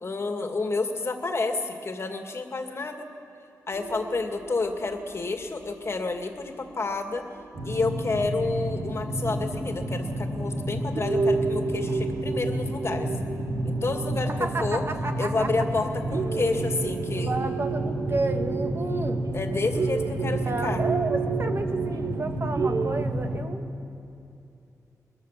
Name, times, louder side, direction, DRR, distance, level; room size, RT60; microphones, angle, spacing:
voice 1, 0.0-3.0 3.7-7.3 7.6-13.1 13.7-14.8 15.2-17.3 19.3-20.8, left 3 dB, 40° left, 5 dB, 2.2 m, -29 dB
sound 1, 3.7-7.7 8.1-8.2 9.3-9.4 9.9-10.0 10.5-10.7 10.9-23.0, right 5 dB, 60° right, 1.0 m, -32 dB
sound 2, 7.5-23.4, right 1 dB, 85° right, 4.2 m, -30 dB
voice 2, 14.3-15.5 17.1-19.2 20.2-23.7, right 2 dB, 40° right, 5 dB, 1.8 m, -31 dB
22.5 x 21.5 x 7.5 m, 2.6 s
cardioid pair, 85°, 7 cm